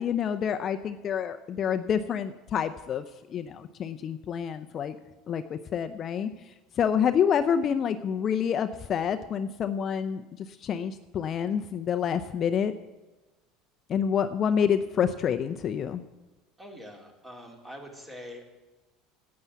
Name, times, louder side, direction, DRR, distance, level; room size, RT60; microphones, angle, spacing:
voice 1, 0.0-3.0 3.3-5.0 5.3-6.3 6.8-12.7 13.9-16.0, left 8 dB, 40° left, 9 dB, 0.6 m, -28 dB
voice 2, 16.6-18.4, equal, 15° right, 2 dB, 2.9 m, -44 dB
9.7 x 8.6 x 9.4 m, 1.1 s
supercardioid pair, 110°, 0 cm